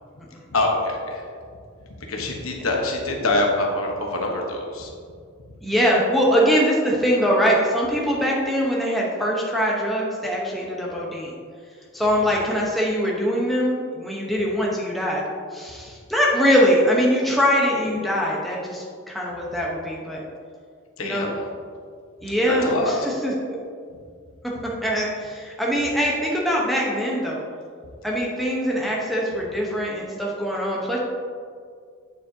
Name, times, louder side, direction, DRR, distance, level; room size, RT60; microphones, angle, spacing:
voice 1, 0.5-1.2 2.1-4.9 21.0-21.4 22.3-22.9, left 2 dB, 80° left, 0 dB, 1.2 m, -25 dB
voice 2, 5.6-11.4 11.9-15.2 15.5-20.2 21.0-21.3 22.2-23.3 24.8-27.4 28.0-31.0, equal, ahead, -4 dB, 1.0 m, -22 dB
8.5 x 7.2 x 2.8 m, 2.2 s
head